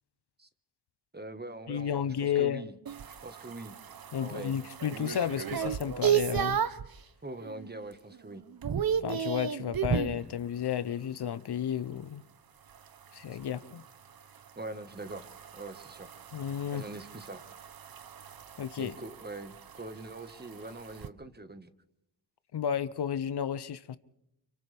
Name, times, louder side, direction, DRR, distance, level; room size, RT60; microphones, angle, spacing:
voice 1, 1.1-2.7 3.2-3.7 4.2-4.5 7.2-8.4 14.5-16.1 16.7-17.4 18.8-21.7, right 2 dB, 25° right, 1.6 m, -43 dB
voice 2, 1.7-2.6 4.1-6.6 9.0-12.2 13.1-13.8 16.3-16.9 18.6-19.0 22.5-24.0, left 9 dB, 65° left, 0.8 m, -32 dB
sound 1, 2.9-6.9 7.4-7.8 8.1-10.2 12.7-21.1, right 8 dB, 55° right, 1.0 m, -34 dB
30.0 x 25.5 x 3.5 m
cardioid pair, 60°, 43 cm